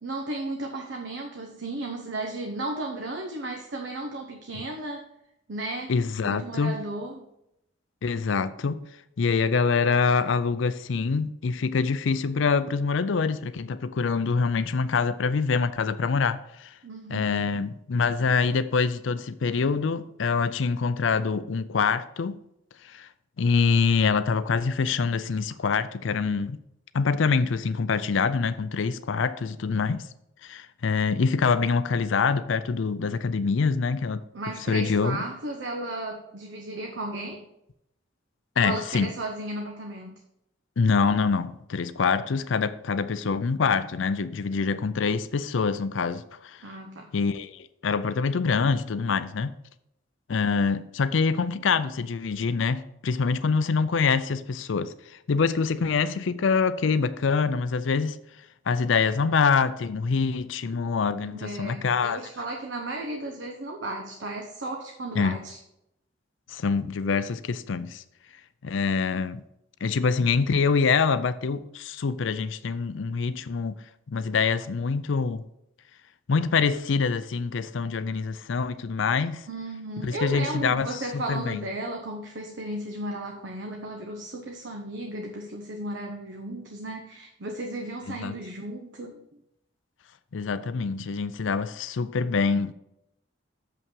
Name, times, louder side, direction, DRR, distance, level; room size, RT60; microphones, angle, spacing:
voice 1, 0.0-5.1 5.5-5.9 6.2-7.3 16.8-17.5 34.3-37.4 38.6-40.2 46.6-47.1 61.2-65.6 79.5-89.2, right 2 dB, 65° right, 0.8 m, -34 dB
voice 2, 5.9-6.7 8.0-8.8 9.2-16.8 17.1-22.4 22.8-23.1 23.4-26.6 26.9-30.1 30.4-34.2 34.7-35.2 38.6-39.1 40.8-46.6 47.1-49.6 50.3-58.2 58.7-62.2 65.1-65.4 66.5-68.0 68.6-69.4 69.8-73.8 74.1-75.5 76.3-79.5 80.0-81.6 88.1-88.3 90.3-92.7, left 5 dB, 75° left, 0.5 m, -25 dB
7.0 x 5.6 x 5.3 m
head